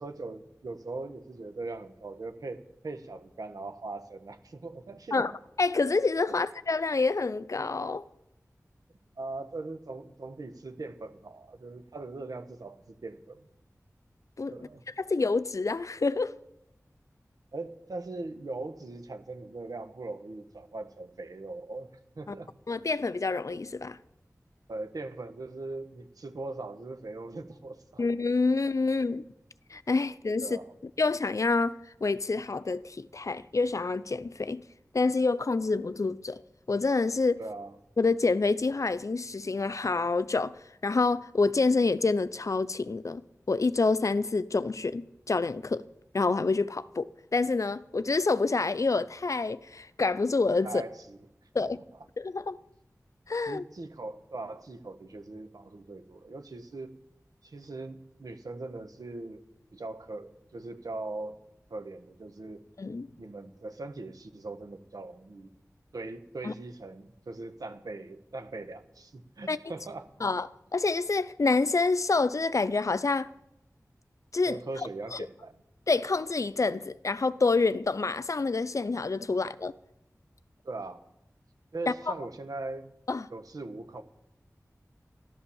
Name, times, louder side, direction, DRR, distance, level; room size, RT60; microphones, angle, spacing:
voice 1, 0.0-5.3 9.2-13.5 14.5-14.8 17.5-22.5 24.7-28.1 30.4-30.7 37.4-37.7 50.6-51.2 51.7-51.8 53.4-56.9 57.4-59.4 59.7-61.4 61.7-62.6 63.2-65.5 65.9-70.1 74.5-75.6 80.6-81.0 81.7-82.9 83.3-84.0, right 2 dB, 90° right, 1.3 m, -40 dB
voice 2, 5.6-8.0 14.4-14.5 15.0-16.4 22.7-24.0 28.0-29.2 29.7-30.5 31.0-34.6 34.9-36.4 36.7-37.4 38.0-40.6 40.8-43.2 43.5-45.9 46.1-50.8 51.5-51.8 52.2-52.6 53.3-53.6 62.8-63.1 66.4-66.5 69.5-69.6 70.2-70.5 70.7-73.3 74.3-74.6 75.1-75.3 75.9-79.7 81.9-82.0 83.1-83.3, left 3 dB, 60° left, 0.6 m, -27 dB
13.0 x 11.5 x 7.1 m
wide cardioid pair, 55°, 6 cm